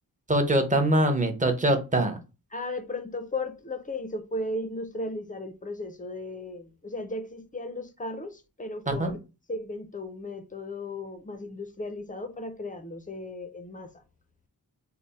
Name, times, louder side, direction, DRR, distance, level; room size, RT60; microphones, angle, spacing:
voice 1, 0.3-2.2 8.9-9.1, right 1 dB, 20° right, 0.7 m, -23 dB
voice 2, 2.5-9.2 9.5-13.9, left 2 dB, 20° left, 0.5 m, -35 dB
3.3 x 2.1 x 3.9 m
wide cardioid pair, 110°, 39 cm